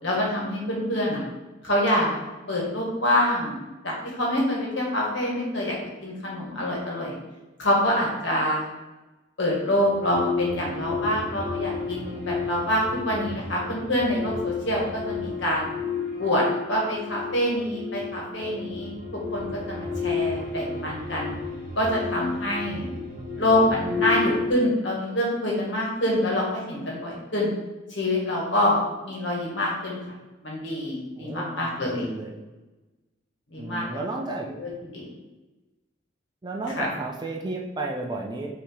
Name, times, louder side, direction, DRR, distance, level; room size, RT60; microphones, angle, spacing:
voice 1, 0.0-1.2 1.6-2.1 2.5-3.5 3.8-5.7 6.0-7.2 7.6-8.7 9.4-15.7 16.2-18.9 19.3-21.3 21.7-22.9 23.4-27.5 27.9-30.0 30.4-32.1 33.5-34.0 34.6-34.7 34.9-35.1 36.8-36.9, left 1 dB, 65° left, -3 dB, 1.5 m, -26 dB
sound 1, 9.8-24.5, left 4 dB, 45° right, 1.2 m, -32 dB
voice 2, 23.1-24.1 31.1-32.4 33.6-34.5 36.4-38.5, right 2 dB, 20° right, 1 dB, 0.4 m, -33 dB
5.6 x 2.9 x 3.2 m, 1.1 s
head